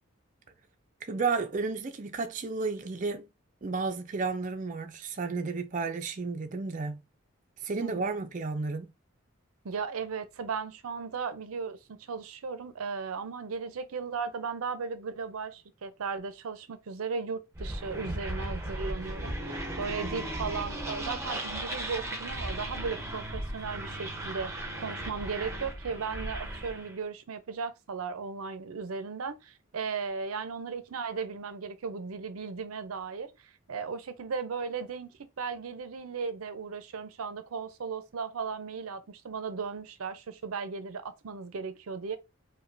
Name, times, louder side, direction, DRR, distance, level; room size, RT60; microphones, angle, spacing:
voice 1, 1.0-3.3 3.6-7.0 7.6-8.9, right 4 dB, 35° right, 0.4 m, -32 dB
voice 2, 9.6-33.3 33.7-42.2, right 5 dB, 90° right, 0.5 m, -36 dB
sound 1, 17.5-26.9, right 1 dB, 15° right, 0.8 m, -36 dB
5.0 x 2.2 x 2.6 m
head